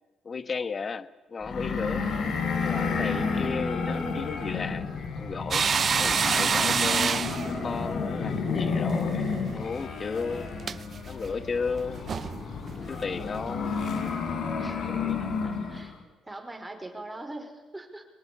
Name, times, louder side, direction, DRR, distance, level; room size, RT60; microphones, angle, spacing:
voice 1, 0.2-2.1 2.6-4.9 5.2-5.7 6.0-7.3 7.6-9.2 9.5-10.5 11.1-12.0 12.8-13.8 14.9-15.3, left 5 dB, 40° left, 15 dB, 1.3 m, -34 dB
sound 1, 1.4-15.9, left 5 dB, 60° left, 4.3 m, -31 dB
voice 2, 3.0-3.5 10.3-10.8 12.7-13.3 14.6-14.9 15.4-16.0 16.2-18.0, right 2 dB, 15° right, 4 dB, 5.1 m, -42 dB
sound 2, 5.5-9.0 9.3-9.5 10.6-10.8 11.8-11.9 12.1-12.4 12.7-12.8 13.3-13.5, right 6 dB, 45° right, 0.8 m, -27 dB
23.5 x 19.0 x 8.6 m, 1.2 s
cardioid pair, 90°, 0 cm